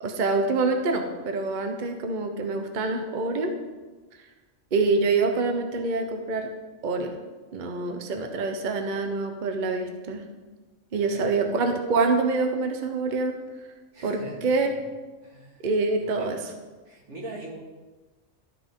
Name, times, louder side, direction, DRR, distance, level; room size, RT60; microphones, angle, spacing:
voice 1, 0.0-3.5 4.7-6.5 6.8-7.2 7.5-10.2 10.9-13.4 14.0-14.7 15.6-16.4, right 3 dB, 45° right, 5 dB, 0.9 m, -26 dB
voice 2, 10.9-11.5 13.9-14.9 15.2-15.7 16.0-16.5 16.9-17.6, right 1 dB, 85° right, -2 dB, 2.2 m, -42 dB
12.5 x 5.8 x 3.7 m, 1.3 s
omnidirectional pair, 1.2 m